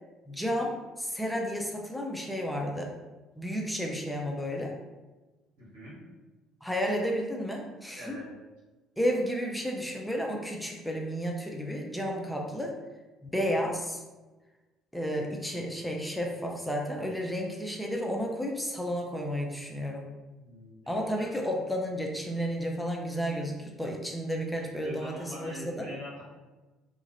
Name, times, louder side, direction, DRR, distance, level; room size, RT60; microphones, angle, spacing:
voice 1, 0.3-2.9 3.4-4.7 6.6-8.2 9.0-12.7 13.2-14.0 14.9-20.1 20.9-25.9, equal, 5° left, 0 dB, 0.5 m, -32 dB
voice 2, 5.6-6.0 7.9-8.3 20.3-21.2 24.8-26.2, left 1 dB, 75° right, -8 dB, 1.4 m, -43 dB
2.8 x 2.4 x 2.8 m, 1.2 s
hypercardioid pair, 55°, 0 cm